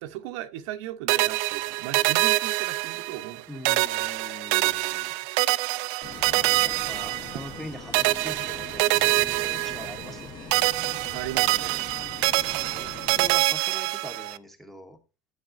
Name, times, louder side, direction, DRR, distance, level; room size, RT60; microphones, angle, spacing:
voice 1, 0.0-3.5 4.6-4.8 11.1-11.9, right 13 dB, 80° right, 0.8 m, -37 dB
sound 1, 1.1-3.4 3.6-7.6 7.9-10.2 10.5-14.4, right 20 dB, 60° right, 0.4 m, -25 dB
voice 2, 3.5-5.1 5.8-5.9 6.2-11.0 12.6-15.0, equal, ahead, 0.9 m, -43 dB
sound 2, 6.0-13.3, left 6 dB, 30° left, 1.0 m, -42 dB
10.5 x 8.1 x 2.6 m
cardioid pair, 165°, 15 cm